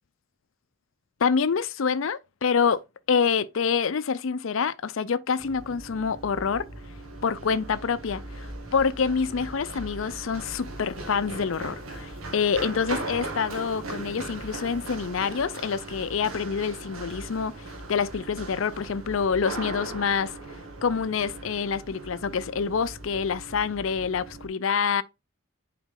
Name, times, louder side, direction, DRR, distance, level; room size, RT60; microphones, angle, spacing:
voice 1, 1.2-2.8 3.1-6.7 7.2-20.3 20.8-25.0, left 6 dB, 70° left, 0.5 m, -27 dB
Run, 5.4-24.5, right 2 dB, 85° right, 2.1 m, -39 dB
7.1 x 4.9 x 3.7 m
head